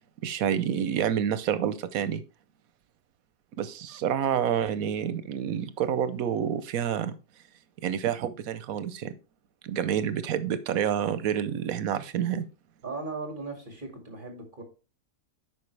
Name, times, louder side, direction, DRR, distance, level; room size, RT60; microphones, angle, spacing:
voice 1, 0.2-2.2 3.6-7.2 7.8-9.1 9.6-12.4, right 9 dB, 85° right, 13 dB, 1.2 m, -28 dB
voice 2, 12.8-14.6, right 3 dB, 35° right, 2 dB, 2.3 m, -37 dB
9.1 x 5.6 x 3.3 m, 0.34 s
omnidirectional pair, 1.4 m